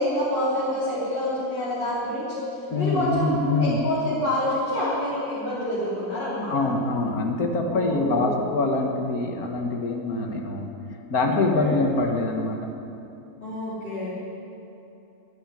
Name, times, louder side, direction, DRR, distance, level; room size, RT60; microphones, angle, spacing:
voice 1, 0.0-6.7 7.7-8.4 11.5-11.8 13.4-14.1, left 1 dB, 35° left, -11 dB, 3.7 m, -27 dB
voice 2, 2.7-3.8 6.5-10.7 11.1-12.6, left 2 dB, 70° left, 3 dB, 2.0 m, -24 dB
11.5 x 11.0 x 10.0 m, 2.9 s
omnidirectional pair, 1.6 m